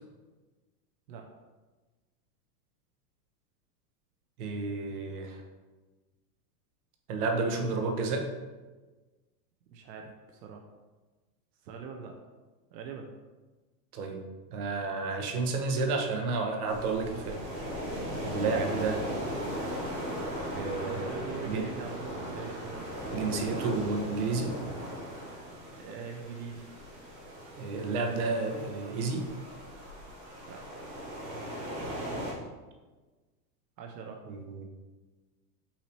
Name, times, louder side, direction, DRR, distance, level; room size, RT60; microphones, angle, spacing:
voice 1, 4.4-5.4 7.1-8.2 13.9-14.2 14.5-17.4 18.2-19.0 20.5-21.6 23.1-24.5 27.6-29.3 34.3-34.7, right 4 dB, 65° right, 4 dB, 0.9 m, -31 dB
voice 2, 7.3-7.9 9.7-10.7 11.6-12.2 12.7-13.1 18.6-19.2 20.8-22.8 25.7-26.7 30.5-30.6 33.8-34.2, right 5 dB, 85° right, 2 dB, 0.7 m, -42 dB
sound 1, 16.7-32.3, equal, 30° right, 0.7 m, -38 dB
5.7 x 2.8 x 3.2 m, 1.2 s
supercardioid pair, 160°, 49 cm